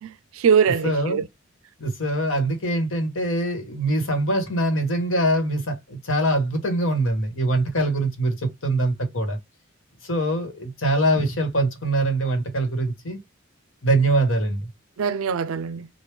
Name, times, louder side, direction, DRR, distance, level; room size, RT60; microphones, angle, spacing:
voice 1, 0.0-1.3 15.0-15.9, right 6 dB, 80° right, 0.4 m, -22 dB
voice 2, 0.8-1.2 1.8-9.4 10.0-13.2 13.8-14.6, right 1 dB, 70° left, 1.1 m, -23 dB
3.2 x 2.2 x 3.3 m
head